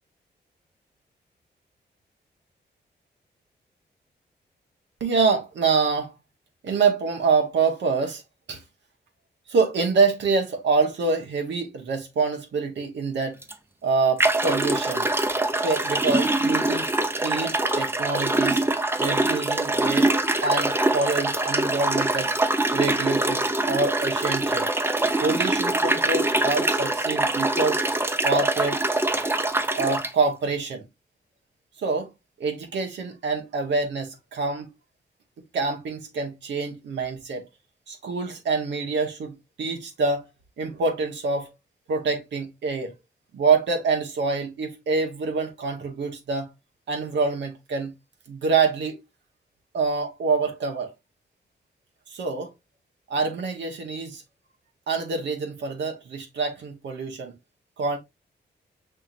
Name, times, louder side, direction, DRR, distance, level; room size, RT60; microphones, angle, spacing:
voice 1, 5.0-6.1 6.6-8.2 8.5-8.6 9.5-13.4 13.8-15.1 15.6-16.9 17.2-18.6 19.0-20.1 20.4-22.3 22.7-24.7 25.2-27.8 28.2-28.8 29.1-29.2 29.7-30.9 31.8-32.1 32.4-34.7 35.5-37.5 37.9-40.3 40.6-41.5 41.9-42.9 43.3-46.5 46.9-47.9 48.3-49.0 49.7-50.9 52.1-52.5 53.1-54.2 54.9-57.3 57.8-58.0, right 4 dB, 85° right, 0.9 m, -26 dB
sound 1, 13.4-13.5 14.2-30.1, right 2 dB, 10° right, 0.6 m, -24 dB
5.6 x 2.8 x 2.4 m
cardioid pair, 80°, 18 cm